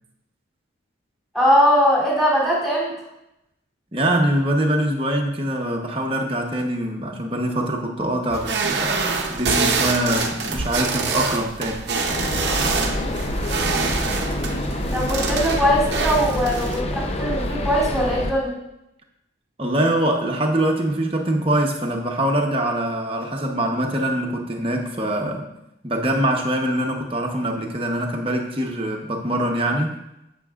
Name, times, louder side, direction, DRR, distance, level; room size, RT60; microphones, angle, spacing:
voice 1, 1.3-2.9 14.9-18.5, equal, ahead, -6 dB, 3.0 m, -20 dB
voice 2, 3.9-11.9 19.6-25.5 25.8-29.9, right 1 dB, 30° right, 1 dB, 1.0 m, -23 dB
sound 1, 8.3-16.8, right 4 dB, 60° right, 0.8 m, -25 dB
sound 2, 12.1-18.3, left 1 dB, 30° left, 0.6 m, -26 dB
15.0 x 6.1 x 2.4 m, 0.86 s
head